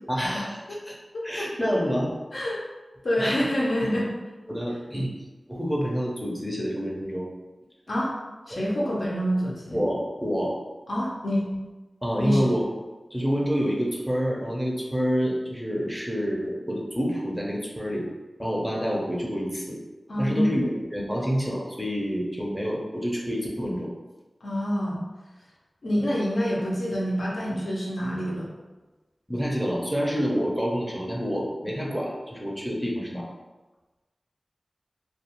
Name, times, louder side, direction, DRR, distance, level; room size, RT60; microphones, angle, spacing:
voice 1, 0.1-0.9 1.2-2.1 3.2-3.5 4.5-5.1 5.5-7.3 8.5-8.6 9.7-10.5 12.0-12.6 13.1-18.0 18.4-19.8 20.2-23.9 29.3-33.3, equal, ahead, -3 dB, 0.5 m, -28 dB
voice 2, 1.1-1.7 2.3-2.6 3.0-4.1 7.9-8.1 8.5-9.8 10.9-11.5 12.2-12.5 20.1-20.5 24.4-25.0 25.8-28.5, equal, 75° left, -5 dB, 0.7 m, -26 dB
2.4 x 2.3 x 2.9 m, 1.2 s
wide cardioid pair, 70°, 0 cm